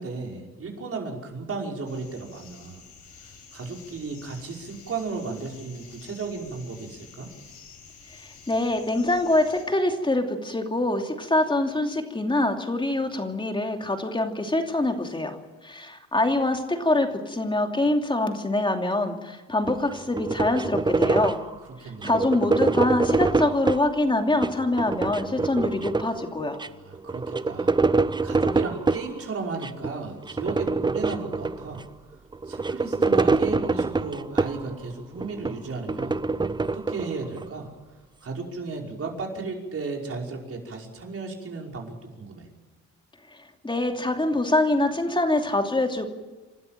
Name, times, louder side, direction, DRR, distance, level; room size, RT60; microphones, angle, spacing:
voice 1, 0.0-2.8 3.5-7.3 21.8-22.2 26.6-27.8 28.2-31.8 32.5-36.2 36.6-37.7 38.2-42.5, right 4 dB, 50° right, 0 dB, 5.5 m, -34 dB
sound 1, 1.9-9.7, left 6 dB, 70° left, 6.9 m, -49 dB
voice 2, 8.1-15.4 15.6-21.4 21.8-26.6 43.3-46.1, left 2 dB, 15° left, 4 dB, 2.8 m, -25 dB
sound 2, 19.7-21.5 22.0-23.9 24.3-26.2 26.6-26.7 26.9-29.1 29.6-29.9 30.2-31.8 32.3-34.7 35.2-37.5, right 3 dB, 15° right, 0.7 m, -25 dB
28.0 x 12.5 x 9.1 m, 1.3 s
cardioid pair, 90°, 30 cm